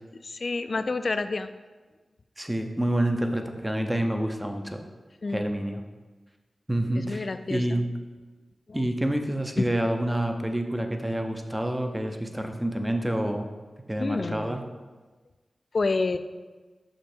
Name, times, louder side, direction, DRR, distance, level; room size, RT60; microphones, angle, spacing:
voice 1, 0.2-1.5 5.2-5.4 7.0-7.8 8.7-8.8 9.6-9.7 14.0-14.5 15.7-16.2, left 3 dB, 55° left, 11 dB, 0.4 m, -28 dB
voice 2, 2.4-4.8 5.3-5.8 6.7-7.8 8.7-13.5 13.9-14.6, right 1 dB, 10° right, 5 dB, 0.7 m, -28 dB
6.3 x 5.1 x 4.4 m, 1.3 s
cardioid pair, 55°, 0 cm